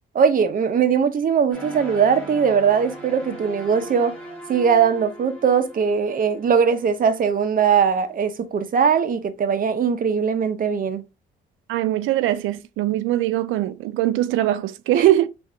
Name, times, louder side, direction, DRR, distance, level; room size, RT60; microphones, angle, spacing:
voice 1, 0.1-4.2 4.5-11.0 14.9-15.1, right 6 dB, 45° right, 0.7 m, -20 dB
sound 1, 1.5-7.4, right 2 dB, 5° left, 1.8 m, -39 dB
voice 2, 11.7-15.3, right 14 dB, 90° right, 0.4 m, -21 dB
3.6 x 2.6 x 4.4 m
cardioid pair, 90°, 20 cm